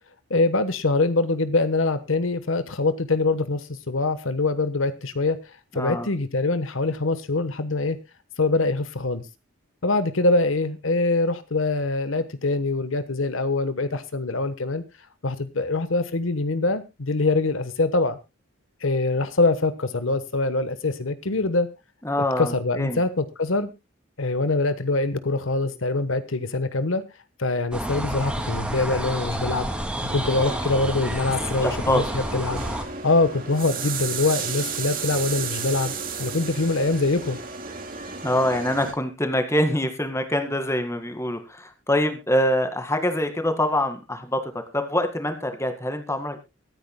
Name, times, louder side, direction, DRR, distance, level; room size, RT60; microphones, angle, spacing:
voice 1, 0.3-5.4 5.7-8.0 8.4-9.2 9.8-14.8 15.2-18.2 18.8-21.7 22.4-23.7 24.2-27.0 27.4-29.7 30.1-32.6 33.0-35.9 36.2-37.4, left 3 dB, 75° left, 12 dB, 1.2 m, -24 dB
voice 2, 5.7-6.1 22.0-23.0 31.6-32.0 38.2-46.4, left 1 dB, 15° left, 7 dB, 2.0 m, -25 dB
sound 1, 27.7-32.8, right 1 dB, 5° right, 2.6 m, -29 dB
sound 2, 30.1-38.9, right 5 dB, 45° right, 2.6 m, -33 dB
23.5 x 9.6 x 2.2 m, 0.26 s
head